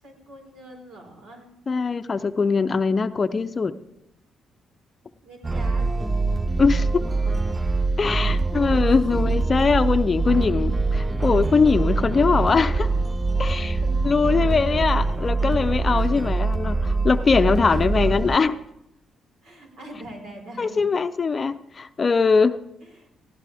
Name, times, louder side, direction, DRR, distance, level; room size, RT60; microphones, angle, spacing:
voice 1, 0.0-1.5 5.2-5.8 8.8-9.2 13.8-13.9 14.8-15.1 16.0-16.4 17.7-18.2 19.4-20.8 22.8-23.2, right 1 dB, 80° right, 1 dB, 4.8 m, -44 dB
voice 2, 1.7-3.8 6.6-6.9 8.0-12.9 13.4-13.8 14.0-18.5 20.6-22.6, left 4 dB, 35° left, 10 dB, 0.6 m, -21 dB
sound 1, 5.4-18.4, right 3 dB, 20° right, 0.5 m, -24 dB
18.0 x 16.0 x 3.5 m, 0.85 s
cardioid pair, 90°, 0 cm